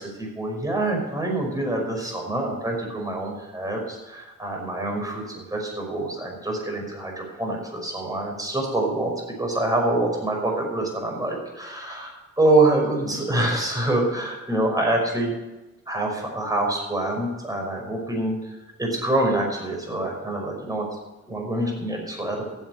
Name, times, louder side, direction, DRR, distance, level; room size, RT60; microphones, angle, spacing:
voice 1, 0.0-15.4 15.9-20.9 21.3-22.5, right 2 dB, 10° right, 0 dB, 5.6 m, -26 dB
15.0 x 8.2 x 6.7 m, 1.1 s
cardioid pair, 90°, 30 cm